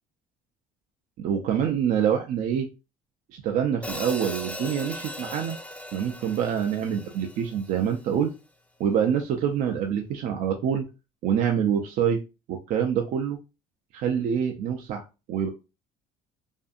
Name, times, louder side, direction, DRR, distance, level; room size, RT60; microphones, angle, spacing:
voice 1, 1.2-2.7 3.3-5.6 5.9-8.3 8.8-10.9 11.2-12.2 12.5-13.4 13.9-15.5, right 8 dB, 65° right, 3 dB, 0.4 m, -26 dB
Hi-hat, 3.8-8.0, left 1 dB, 10° left, 0.4 m, -38 dB
2.6 x 2.5 x 2.3 m, 0.29 s
supercardioid pair, 90°, 15 cm